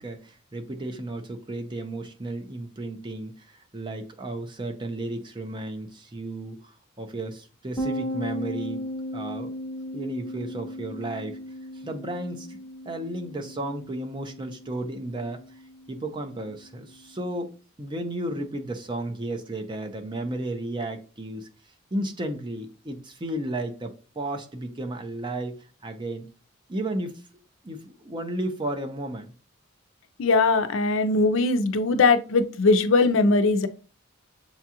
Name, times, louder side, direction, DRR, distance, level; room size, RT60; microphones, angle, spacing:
voice 1, 0.0-8.9 9.1-9.5 9.9-11.4 11.7-12.6 12.9-15.6 15.9-17.5 17.8-21.5 21.9-26.3 26.7-27.2 27.6-29.3, right 1 dB, 25° right, 0.6 m, -33 dB
sound 1, 7.8-17.2, equal, 10° left, 0.8 m, -37 dB
voice 2, 30.2-33.7, left 3 dB, 65° left, 0.5 m, -20 dB
7.1 x 2.4 x 2.8 m
head